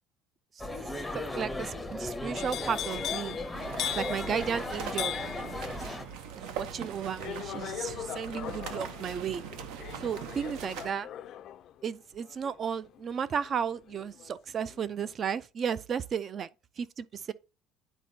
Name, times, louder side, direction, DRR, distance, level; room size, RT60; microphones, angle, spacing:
sound 1, 0.6-6.0, left 2 dB, 5° left, 0.6 m, -36 dB
voice 1, 1.3-3.4 4.0-5.1 6.3-9.4 10.0-11.1 11.8-16.5 16.8-17.3, right 7 dB, 30° right, 0.3 m, -34 dB
sound 2, 2.4-14.3 14.7-15.1, left 11 dB, 45° left, 0.4 m, -40 dB
sound 3, 3.5-10.9, right 8 dB, 75° right, 0.8 m, -41 dB
9.9 x 4.2 x 2.7 m
cardioid pair, 160°, 0 cm